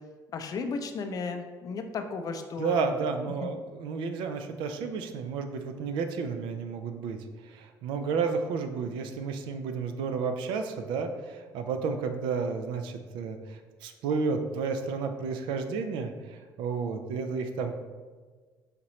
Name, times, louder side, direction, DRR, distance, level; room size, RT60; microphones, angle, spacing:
voice 1, 0.3-2.8 3.4-3.5, left 4 dB, 50° left, 6 dB, 0.4 m, -34 dB
voice 2, 2.6-7.2 7.4-17.8, right 5 dB, 85° right, 7 dB, 0.4 m, -32 dB
4.9 x 2.9 x 3.1 m, 1.4 s
cardioid pair, 95°, 8 cm